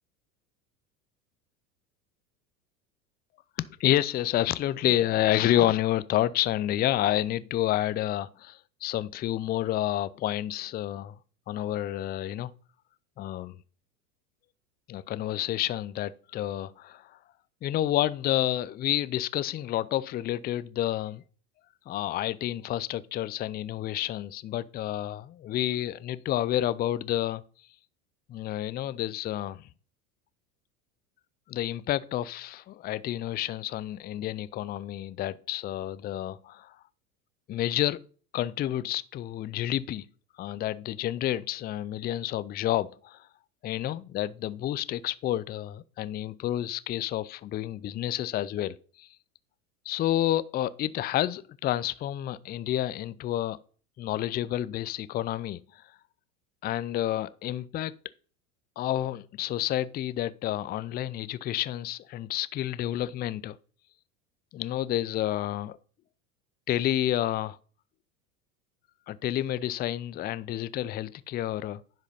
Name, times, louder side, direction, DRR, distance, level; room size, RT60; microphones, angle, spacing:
voice 1, 3.6-11.2 11.5-12.5 13.2-13.6 14.9-17.2 17.6-21.2 21.9-27.4 28.3-29.7 31.5-36.8 37.5-38.0 38.3-40.1 40.4-43.3 43.6-49.1 49.9-53.6 54.0-55.8 56.6-57.9 58.8-63.6 64.5-65.8 66.7-67.6 69.1-71.8, left 13 dB, 25° left, 0.4 m, -29 dB
10.5 x 4.9 x 5.5 m
hypercardioid pair, 90°, 44 cm